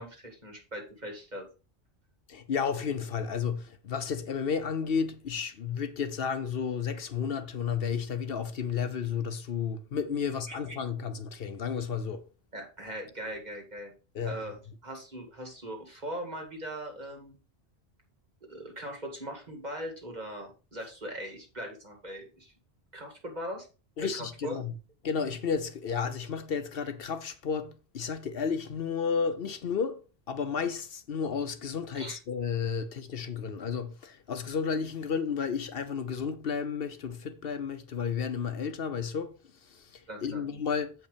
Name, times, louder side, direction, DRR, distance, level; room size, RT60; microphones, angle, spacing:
voice 1, 0.0-1.5 10.5-10.6 12.5-13.9 14.2-14.6 14.8-17.4 18.5-22.5 22.9-23.7 24.0-24.6 31.9-32.2 40.1-40.4, right 1 dB, 45° right, 2.3 m, -40 dB
voice 2, 2.3-12.2 14.1-14.4 24.0-24.7 25.0-30.0 30.3-39.4 39.7-40.9, left 6 dB, 65° left, 1.0 m, -32 dB
7.9 x 5.3 x 5.0 m
omnidirectional pair, 1.1 m